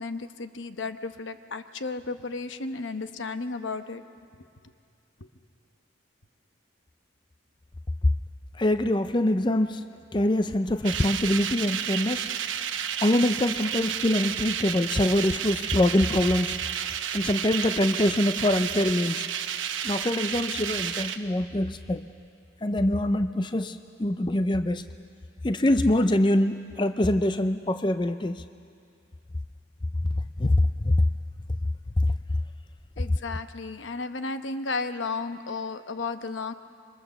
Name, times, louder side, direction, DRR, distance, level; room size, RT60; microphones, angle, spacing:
voice 1, 0.0-4.0 5.2-5.3 33.0-36.5, left 3 dB, 80° left, 9 dB, 1.0 m, -33 dB
voice 2, 8.6-9.8 10.1-12.3 13.0-16.5 17.1-19.3 19.8-22.1 22.6-24.8 25.4-28.4 30.4-30.9 32.0-32.1, left 1 dB, 25° left, 10 dB, 0.5 m, -24 dB
sound 1, 10.8-21.2, right 9 dB, 90° right, 1.0 m, -31 dB
26.5 x 23.0 x 7.1 m, 2.4 s
head